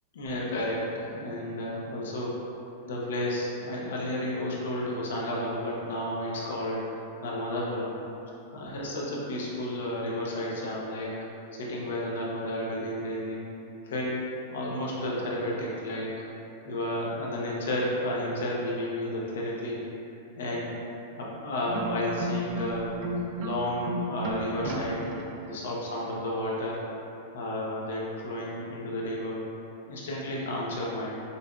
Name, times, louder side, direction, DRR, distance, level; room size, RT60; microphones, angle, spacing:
voice 1, 0.1-2.3 2.8-8.0 8.5-11.1 11.5-13.5 13.8-14.2 14.5-16.1 16.6-19.8 20.4-20.8 21.2-22.9 23.4-25.0 25.4-26.8 27.3-29.4 29.9-31.2, left 1 dB, 90° left, -4 dB, 0.8 m, -32 dB
sound 1, 21.7-25.7, right 2 dB, 40° right, 0.4 m, -33 dB
5.3 x 2.3 x 2.5 m, 2.9 s
supercardioid pair, 160°, 0 cm